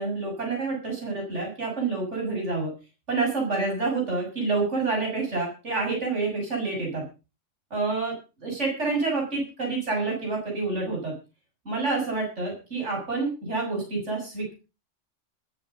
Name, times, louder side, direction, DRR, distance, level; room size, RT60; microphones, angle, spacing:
voice 1, 0.0-2.7 3.1-7.0 7.7-8.2 8.4-11.1 11.7-14.5, right 3 dB, 75° right, 0 dB, 7.1 m, -28 dB
21.0 x 8.1 x 5.5 m, 0.33 s
omnidirectional pair, 1.2 m